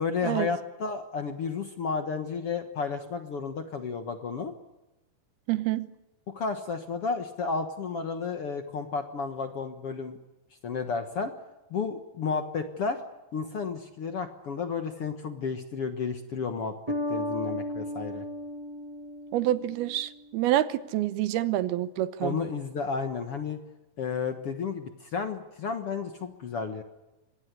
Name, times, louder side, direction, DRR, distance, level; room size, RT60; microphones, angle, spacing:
voice 1, 0.0-4.5 6.3-10.2 10.6-11.3 11.7-13.0 13.3-18.3 22.2-23.6 24.0-26.8, left 5 dB, 55° left, 7 dB, 1.7 m, -32 dB
voice 2, 5.5-5.9 19.3-22.4, right 13 dB, 90° right, 14 dB, 3.0 m, -27 dB
Bass guitar, 16.9-20.4, left 1 dB, 30° right, 2.4 m, -35 dB
25.0 x 19.0 x 8.3 m, 1.0 s
omnidirectional pair, 4.3 m